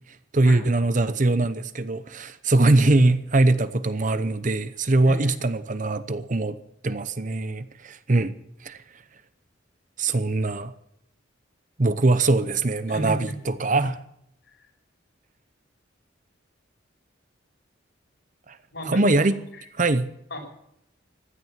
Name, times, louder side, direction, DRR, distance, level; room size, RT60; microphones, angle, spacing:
voice 1, 0.3-6.6 6.8-8.3 8.6-8.8 10.0-10.7 11.8-14.0 18.5-18.6 18.8-19.4 19.8-20.1, right 2 dB, 40° right, 0.8 m, -22 dB
voice 2, 12.9-13.4 18.7-19.3 19.6-19.7 20.3-20.4, equal, 65° left, 5.4 m, -32 dB
16.0 x 11.0 x 7.3 m
head